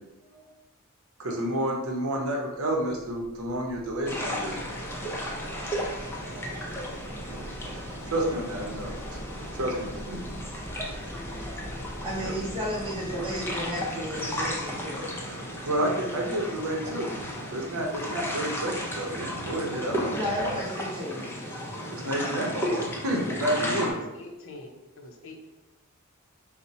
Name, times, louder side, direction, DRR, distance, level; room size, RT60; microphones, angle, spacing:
voice 1, 1.2-4.6 8.1-8.9 9.5-10.2 12.2-12.3 15.7-17.1 17.5-20.2 21.9-23.9, right 1 dB, 70° right, 0 dB, 0.7 m, -30 dB
sound 1, 2.8-16.4, equal, 50° right, 1.0 m, -45 dB
sound 2, 4.1-23.9, equal, 10° left, 0.5 m, -34 dB
voice 2, 12.0-15.1 20.1-21.3, equal, 25° right, -5 dB, 0.7 m, -33 dB
sound 3, 13.8-20.6, right 5 dB, 85° right, 0.3 m, -46 dB
voice 3, 23.8-25.5, left 2 dB, 65° left, 3 dB, 0.5 m, -45 dB
4.2 x 2.1 x 2.7 m, 0.99 s
head